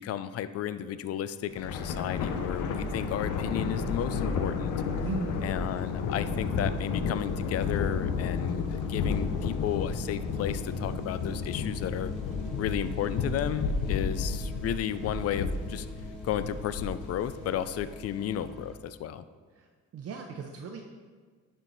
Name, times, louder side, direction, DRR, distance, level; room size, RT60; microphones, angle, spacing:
voice 1, 0.0-4.7 5.4-12.1 12.6-15.9 16.2-19.2, left 10 dB, 55° left, 13 dB, 0.5 m, -33 dB
Thunder, 1.5-18.1, left 5 dB, 85° left, 0.8 m, -32 dB
sound 1, 3.5-18.8, equal, ahead, 1.2 m, -47 dB
voice 2, 5.0-5.4 19.9-20.8, right 5 dB, 50° right, 3 dB, 0.7 m, -36 dB
11.0 x 4.5 x 4.0 m, 1.5 s
cardioid pair, 90°, 30 cm